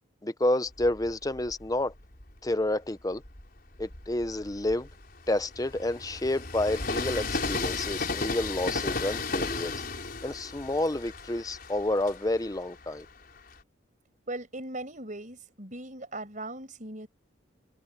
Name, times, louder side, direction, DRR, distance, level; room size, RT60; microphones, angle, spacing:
voice 1, 0.2-1.9 2.4-3.2 3.8-4.9 5.3-9.7 10.2-13.1, left 1 dB, 20° left, 0.7 m, -29 dB
Train, 0.7-2.4 3.0-13.6, left 3 dB, 50° left, 4.9 m, -35 dB
voice 2, 14.3-17.1, right 2 dB, 40° right, 6.2 m, -39 dB
head